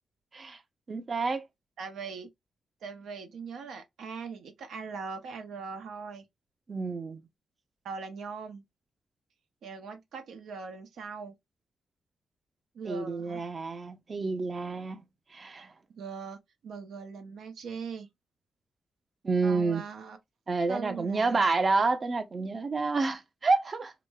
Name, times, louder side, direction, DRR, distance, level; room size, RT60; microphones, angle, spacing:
voice 1, 0.9-1.4 6.7-7.2 12.8-15.0 15.3-15.7 19.2-19.8 20.5-23.9, right 3 dB, 45° right, 0.6 m, -29 dB
voice 2, 1.8-2.3 2.8-6.2 7.8-8.6 9.6-11.3 12.7-13.4 15.9-18.1 19.4-20.2 20.7-21.5, right 5 dB, 85° right, 0.7 m, -40 dB
4.9 x 2.1 x 2.2 m
cardioid pair, 80°, 0 cm